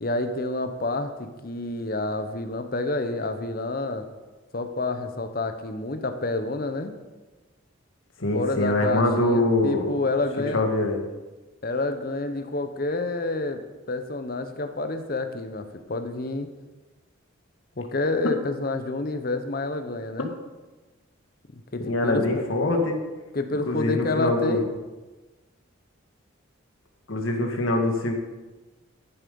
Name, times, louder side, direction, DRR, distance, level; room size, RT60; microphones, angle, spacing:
voice 1, 0.0-4.1 4.5-6.9 8.3-10.6 11.6-13.6 13.9-16.5 17.8-20.3 21.5-22.4 23.3-24.7, left 2 dB, 45° left, 9 dB, 0.9 m, -28 dB
voice 2, 8.2-9.9 10.5-11.0 21.8-23.0 23.6-24.6 27.1-28.1, left 2 dB, 70° left, 3 dB, 1.9 m, -24 dB
13.5 x 7.6 x 5.4 m, 1.2 s
head